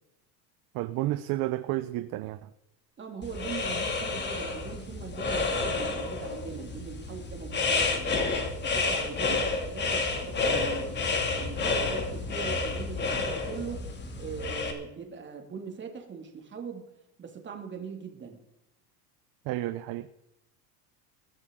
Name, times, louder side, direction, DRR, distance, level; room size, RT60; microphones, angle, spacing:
voice 1, 0.7-2.5 9.3-9.4 19.4-20.1, right 16 dB, 50° right, 0.8 m, -31 dB
voice 2, 3.0-8.2 8.6-11.0 11.2-13.9 14.2-16.9 17.2-18.4, right 6 dB, 25° right, 2.6 m, -41 dB
sound 1, 3.2-14.7, left 3 dB, 25° left, 2.5 m, -30 dB
21.5 x 10.5 x 3.8 m
supercardioid pair, 140°, 44 cm